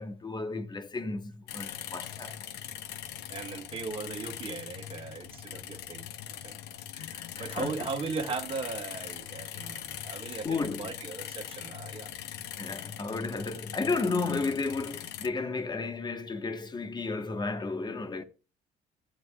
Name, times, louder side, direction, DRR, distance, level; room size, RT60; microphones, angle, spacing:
voice 1, 0.0-2.5 7.0-7.9 10.4-10.9 12.6-18.2, left 3 dB, 25° left, 1.1 m, -33 dB
sound 1, 1.5-15.3, left 11 dB, 80° left, 0.7 m, -41 dB
voice 2, 3.3-12.2, right 4 dB, 35° right, 1.4 m, -38 dB
16.0 x 7.8 x 2.2 m
cardioid pair, 110°, 17 cm